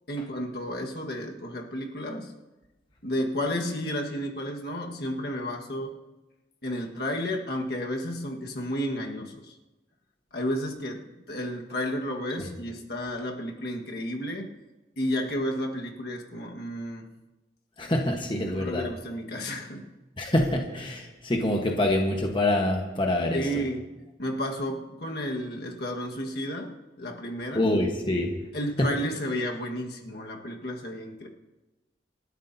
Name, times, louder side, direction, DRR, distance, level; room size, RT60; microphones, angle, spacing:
voice 1, 0.1-2.3 3.0-5.9 6.6-9.6 10.3-14.5 15.0-17.1 18.4-20.0 23.3-23.9 24.2-27.7 28.5-31.3, equal, 60° left, 1 dB, 1.6 m, -32 dB
voice 2, 17.8-18.9 20.2-23.5 27.5-28.4 28.8-28.9, left 1 dB, 25° left, 1 dB, 1.2 m, -25 dB
28.0 x 12.0 x 2.8 m, 1.1 s
head